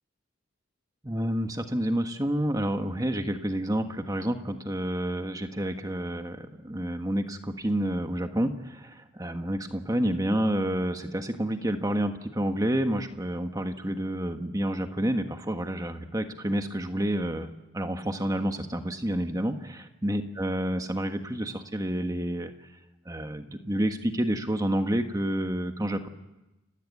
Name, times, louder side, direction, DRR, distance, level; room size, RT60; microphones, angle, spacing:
voice 1, 1.0-17.5 17.7-22.5 23.0-26.1, right 1 dB, 15° right, 6 dB, 1.5 m, -29 dB
29.5 x 16.0 x 9.6 m, 0.99 s
head